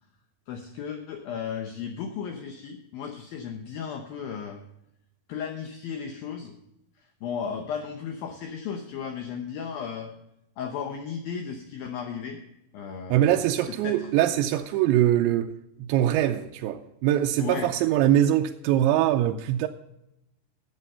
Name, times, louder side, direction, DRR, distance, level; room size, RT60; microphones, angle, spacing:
voice 1, 0.5-4.6 5.3-6.6 7.2-10.1 10.6-12.4 12.7-13.4 13.8-14.1 17.4-17.7, left 7 dB, 85° left, 2.1 m, -35 dB
voice 2, 13.1-15.5 15.8-19.7, right 12 dB, 85° right, 2.7 m, -23 dB
12.0 x 8.0 x 5.5 m
omnidirectional pair, 5.6 m